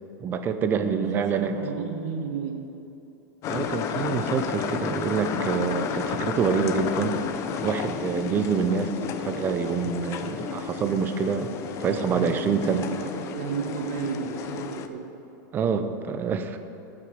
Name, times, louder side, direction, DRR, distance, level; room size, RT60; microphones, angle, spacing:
voice 1, 0.2-1.5 3.5-7.2 7.6-11.5 11.8-12.8 15.5-16.6, right 6 dB, 20° right, 9 dB, 0.6 m, -26 dB
voice 2, 0.7-2.6 12.2-15.1, right 6 dB, 60° right, 2 dB, 1.4 m, -33 dB
sound 1, 3.4-14.9, left 7 dB, 30° left, 0.5 m, -32 dB
14.5 x 6.0 x 6.3 m, 2.9 s
supercardioid pair, 160°, 10 cm